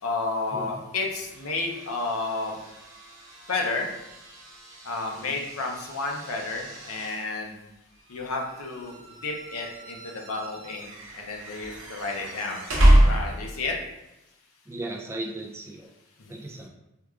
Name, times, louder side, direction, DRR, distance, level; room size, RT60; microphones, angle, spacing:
voice 1, 0.0-2.6 3.5-3.9 4.8-7.6 8.1-12.7 13.0-13.8 16.2-16.4, left 3 dB, 85° left, 1 dB, 0.6 m, -31 dB
sound 1, 0.9-13.7, right 1 dB, 70° right, 0.8 m, -28 dB
voice 2, 14.7-15.9 16.3-16.7, right 2 dB, 10° right, -1 dB, 0.3 m, -36 dB
4.6 x 2.3 x 2.3 m, 0.92 s
head